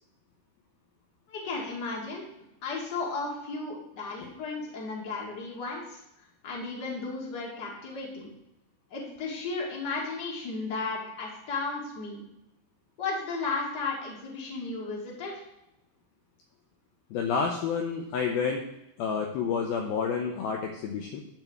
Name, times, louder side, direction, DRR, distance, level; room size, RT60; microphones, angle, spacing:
voice 1, 1.3-2.2 2.6-6.0 6.4-8.3 8.9-12.2 13.0-15.4, left 3 dB, 35° left, -3 dB, 1.7 m, -34 dB
voice 2, 17.1-18.6 19.0-21.2, left 6 dB, 75° left, 2 dB, 2.3 m, -29 dB
12.0 x 6.9 x 3.5 m, 0.86 s
omnidirectional pair, 5.0 m